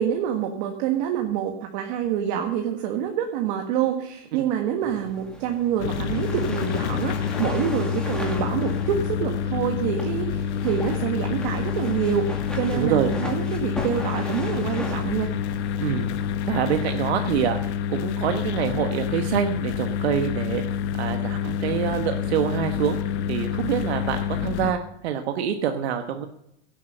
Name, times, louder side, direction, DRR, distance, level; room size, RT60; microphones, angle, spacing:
voice 1, 0.0-12.3 12.6-15.3, right 9 dB, 45° right, 3 dB, 1.6 m, -26 dB
sound 1, 4.8-17.6, left 1 dB, ahead, 2.0 m, -39 dB
sound 2, 5.8-24.7, left 8 dB, 85° left, 1.2 m, -28 dB
voice 2, 12.7-13.1 15.8-16.1 16.5-20.6 21.0-23.0 23.3-26.3, right 9 dB, 75° right, 6 dB, 1.3 m, -26 dB
16.5 x 8.4 x 6.6 m, 0.78 s
supercardioid pair, 165°, 33 cm